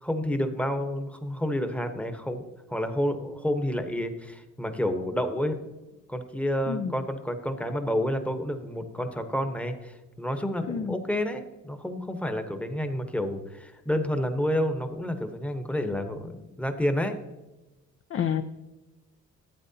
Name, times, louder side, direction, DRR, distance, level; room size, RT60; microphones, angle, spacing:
voice 1, 0.0-2.4 2.7-5.6 6.1-17.2, equal, 5° left, 7 dB, 1.0 m, -29 dB
voice 2, 6.7-7.0 10.7-11.0 18.1-18.4, left 8 dB, 45° left, 8 dB, 0.6 m, -29 dB
12.0 x 8.6 x 2.8 m, 1.1 s
cardioid pair, 90°, 30 cm